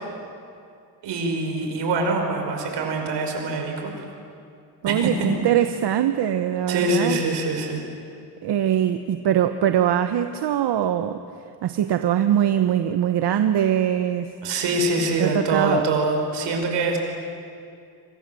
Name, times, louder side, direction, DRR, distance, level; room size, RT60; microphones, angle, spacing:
voice 1, 1.0-4.1 4.9-5.3 6.7-7.8 14.4-17.0, right 2 dB, 90° right, 3 dB, 5.6 m, -24 dB
voice 2, 4.8-7.2 8.4-11.2 11.6-14.3 15.2-15.8, right 10 dB, 70° right, 8 dB, 1.1 m, -22 dB
27.5 x 26.0 x 7.7 m, 2.4 s
cardioid pair, 130°, 41 cm